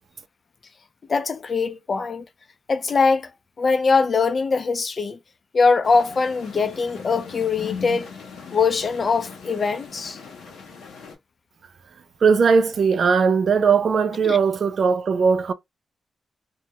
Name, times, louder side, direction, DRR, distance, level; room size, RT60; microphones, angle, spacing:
voice 1, 1.1-2.3 2.7-3.3 3.6-5.2 5.5-8.1 8.5-10.2 14.2-14.4, left 4 dB, 55° left, 0.5 m, -22 dB
sound 1, 5.8-11.1, left 5 dB, 90° left, 0.7 m, -39 dB
voice 2, 12.2-15.5, right 5 dB, 65° right, 0.3 m, -19 dB
2.2 x 2.1 x 2.8 m
cardioid pair, 55°, 0 cm